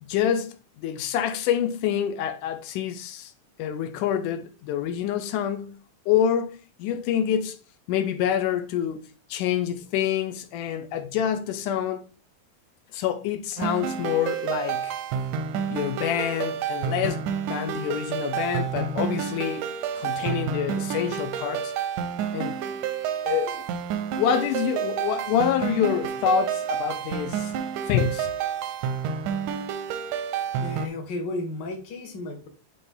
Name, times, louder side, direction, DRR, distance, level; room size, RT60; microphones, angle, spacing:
voice 1, 0.1-3.3 3.6-7.6 7.9-9.0 9.3-12.0 12.9-14.9 15.7-19.6 20.0-21.7 22.3-22.6 23.2-23.7 24.1-27.5 27.9-28.3, left 9 dB, 80° left, 2.1 m, -27 dB
sound 1, 13.6-30.9, right 8 dB, 85° right, 2.1 m, -29 dB
voice 2, 30.6-32.5, left 2 dB, 65° left, 1.0 m, -33 dB
9.9 x 3.4 x 3.6 m
omnidirectional pair, 3.8 m